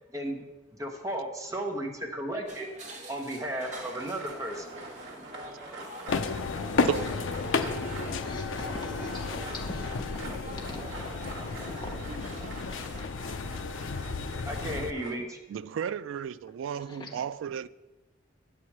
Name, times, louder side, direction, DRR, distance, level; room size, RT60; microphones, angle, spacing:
voice 1, 0.1-0.4 0.8-2.7 3.1-4.7 14.4-15.4, right 1 dB, 15° right, 1 dB, 1.1 m, -34 dB
sound 1, 2.5-13.0, right 1 dB, 35° right, 1.5 m, -45 dB
sound 2, 3.4-15.1, right 2 dB, 60° right, 1.5 m, -46 dB
sound 3, 6.1-14.9, left 4 dB, 80° left, 0.5 m, -32 dB
voice 2, 8.1-9.2 9.5-9.9 10.6-10.9 11.5-12.0 16.8-17.1, left 1 dB, 25° left, 0 dB, 1.1 m, -43 dB
voice 3, 15.5-17.7, right 8 dB, 80° right, 16 dB, 0.3 m, -33 dB
9.4 x 4.7 x 7.2 m, 1.1 s
head